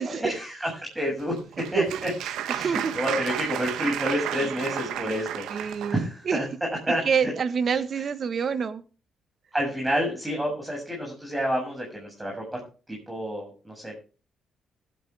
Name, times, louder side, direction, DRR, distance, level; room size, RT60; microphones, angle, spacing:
voice 1, 0.0-1.4 1.7-2.1 2.4-7.3 7.9-8.0 9.5-12.4 12.9-13.9, equal, 15° right, 7.3 m, -29 dB
Applause, 1.2-6.0, right 11 dB, 85° right, 1.4 m, -32 dB
voice 2, 5.5-6.4 7.0-8.8, right 6 dB, 50° right, 1.5 m, -27 dB
16.0 x 11.5 x 3.6 m
cardioid pair, 90°, 0 cm